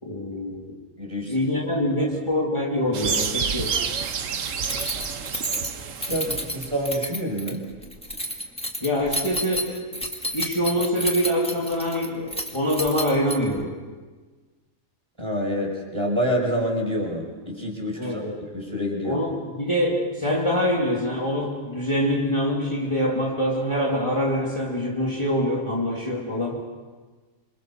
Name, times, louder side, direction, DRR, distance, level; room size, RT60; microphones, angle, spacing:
voice 1, 0.0-0.8 1.3-3.8 8.8-9.8 10.3-13.7 18.0-18.5 19.0-26.6, equal, 20° left, -3 dB, 2.7 m, -25 dB
voice 2, 1.0-1.4 2.0-2.1 6.0-7.7 15.2-18.2 18.5-19.2, equal, 20° right, -1 dB, 5.6 m, -27 dB
sound 1, 2.9-7.0, right 6 dB, 65° right, 1.4 m, -29 dB
Keys jangling, 4.6-13.6, left 1 dB, 5° left, 1.6 m, -31 dB
27.5 x 25.5 x 6.0 m, 1.4 s
omnidirectional pair, 1.4 m